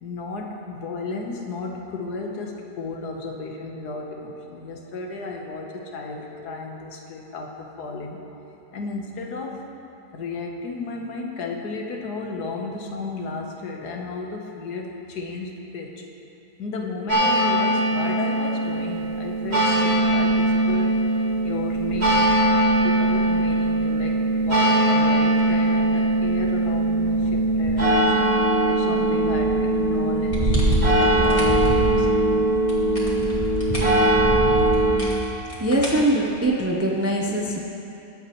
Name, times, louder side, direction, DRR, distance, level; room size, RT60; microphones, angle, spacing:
voice 1, 0.0-8.2 8.7-9.6 10.1-16.0 16.6-21.0 21.4-22.3 22.8-28.2 28.7-30.7 31.0-32.5, left 3 dB, 70° left, 1 dB, 1.6 m, -34 dB
sound 1, 17.1-35.0, right 1 dB, 40° right, 2.1 m, -20 dB
sound 2, 30.3-31.7 32.5-34.0 34.7-36.7, equal, 20° left, 2.4 m, -37 dB
voice 2, 35.6-37.6, right 1 dB, 20° right, -2 dB, 0.3 m, -22 dB
22.5 x 8.1 x 3.1 m, 3.0 s
omnidirectional pair, 1.8 m